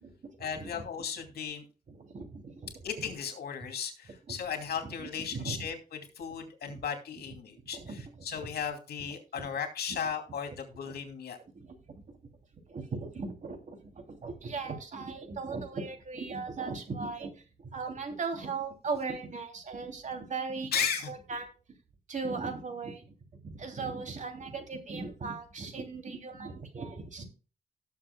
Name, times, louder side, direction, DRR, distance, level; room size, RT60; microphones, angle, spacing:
voice 1, 0.4-1.6 2.8-5.8 6.1-11.4 20.7-21.1, left 7 dB, 85° left, 5 dB, 2.7 m, -35 dB
voice 2, 1.9-2.7 5.3-5.7 6.7-6.8 7.7-8.0 9.9-10.0 10.9-11.0 11.5-11.7 12.7-20.7 21.1-21.5 22.1-23.1 23.4-27.3, right 4 dB, 50° right, 4 dB, 3.1 m, -38 dB
18.0 x 7.2 x 2.3 m, 0.34 s
wide cardioid pair, 125°, 16 cm